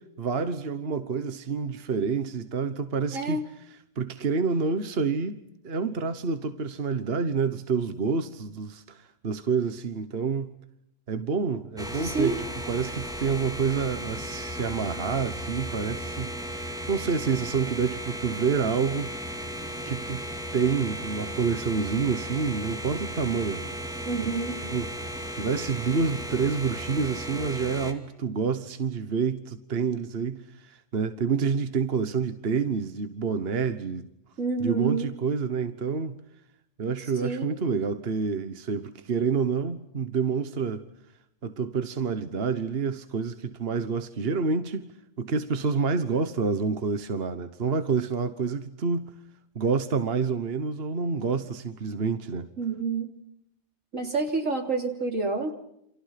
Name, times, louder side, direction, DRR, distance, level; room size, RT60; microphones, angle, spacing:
voice 1, 0.2-3.4 4.0-10.5 11.1-19.2 19.9-20.2 20.5-23.6 24.2-24.3 24.7-24.9 25.3-34.1 34.6-36.1 36.8-40.8 41.4-44.9 45.2-49.1 49.5-52.5, right 5 dB, 50° right, 1.4 m, -28 dB
voice 2, 3.1-3.5 12.0-12.4 24.0-24.6 34.4-35.1 37.2-37.5 52.6-53.1 53.9-55.5, right 3 dB, 80° right, 3.8 m, -28 dB
sound 1, 11.8-27.9, equal, 5° right, 2.4 m, -35 dB
29.0 x 27.5 x 5.9 m
omnidirectional pair, 1.3 m